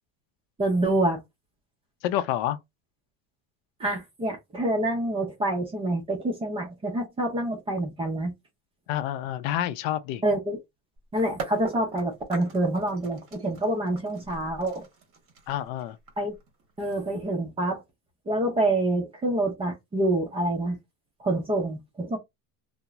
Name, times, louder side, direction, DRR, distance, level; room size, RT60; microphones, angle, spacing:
voice 1, 0.6-1.2 3.8-8.3 10.2-10.6 11.1-14.8 16.2-16.3 16.8-17.8 18.3-20.8 21.2-22.2, right 1 dB, 15° right, 0.4 m, -27 dB
voice 2, 2.0-2.6 8.9-10.2 15.5-16.0, left 12 dB, 70° left, 0.5 m, -28 dB
sound 1, 11.0-11.1 11.4-17.2, right 4 dB, 35° right, 0.9 m, -41 dB
2.8 x 2.0 x 2.3 m
supercardioid pair, 145°, 41 cm